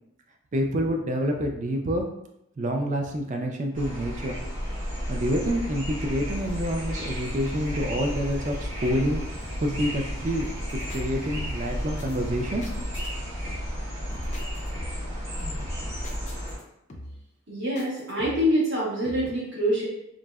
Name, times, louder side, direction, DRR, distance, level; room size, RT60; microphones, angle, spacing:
voice 1, 0.5-2.1 2.6-4.4 5.1-9.2 9.6-12.7, equal, 35° right, 2 dB, 0.4 m, -27 dB
sound 1, 3.7-16.6, equal, 85° right, 1.5 m, -33 dB
sound 2, 6.3-12.9, equal, 5° right, 0.6 m, -38 dB
sound 3, 10.7-11.0 11.3-11.7 12.0-13.1 13.5-13.9 14.1-15.1 15.4-16.6 16.9-17.3 17.8-18.6 19.0-19.3, left 1 dB, 35° left, 0.4 m, -42 dB
voice 2, 17.5-19.9, equal, 60° right, -6 dB, 1.1 m, -25 dB
3.7 x 2.0 x 2.3 m, 0.80 s
head